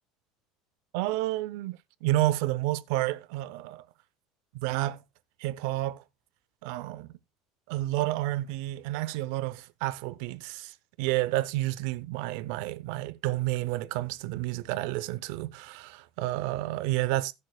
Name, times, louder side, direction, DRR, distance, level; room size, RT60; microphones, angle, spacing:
voice 1, 0.9-3.8 4.5-5.0 5.4-6.0 6.6-7.1 7.7-17.3, right 16 dB, 65° right, 0.6 m, -30 dB
17.5 x 6.5 x 2.3 m
cardioid pair, 175°, 0 cm